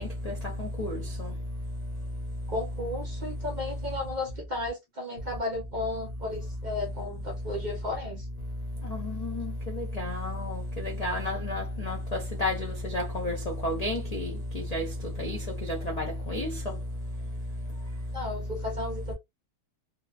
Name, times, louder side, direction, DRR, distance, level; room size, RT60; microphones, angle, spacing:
voice 1, 2.5-8.3 18.1-19.1, left 2 dB, 40° right, 0.7 m, -34 dB
voice 2, 10.0-10.3 11.0-12.0 12.4-12.5 12.9-13.3 13.6-14.3 14.7-14.8 15.2-15.4 16.3-16.5, left 1 dB, 50° left, 0.5 m, -30 dB
3.0 x 2.1 x 2.3 m
omnidirectional pair, 1.6 m